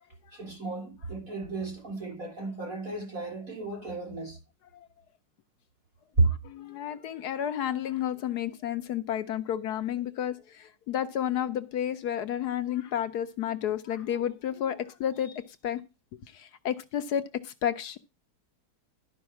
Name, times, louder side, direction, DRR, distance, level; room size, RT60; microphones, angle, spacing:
voice 1, 0.3-4.4 6.2-6.3, right 3 dB, 50° right, 6.8 m, -31 dB
voice 2, 6.4-15.8 16.3-18.0, left 10 dB, 70° left, 1.2 m, -31 dB
12.0 x 5.2 x 5.8 m
omnidirectional pair, 1.8 m